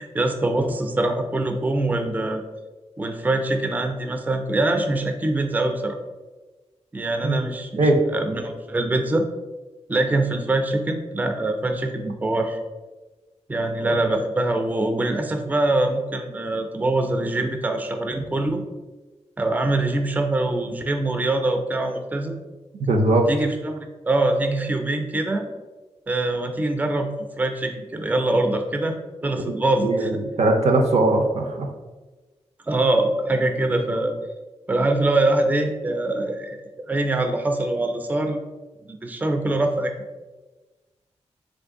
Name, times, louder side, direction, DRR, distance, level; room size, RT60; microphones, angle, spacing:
voice 1, 0.0-2.4 3.0-6.0 6.9-9.3 9.9-12.6 13.5-18.6 19.4-22.3 23.3-23.8 24.1-25.5 26.1-30.1 32.7-34.1 34.7-36.6 36.9-38.4 38.8-39.9, right 2 dB, 15° right, 5 dB, 0.4 m, -23 dB
voice 2, 22.8-23.3 29.8-31.7, right 2 dB, 70° right, 4 dB, 0.5 m, -20 dB
3.1 x 2.5 x 3.6 m, 1.2 s
cardioid pair, 70°, 12 cm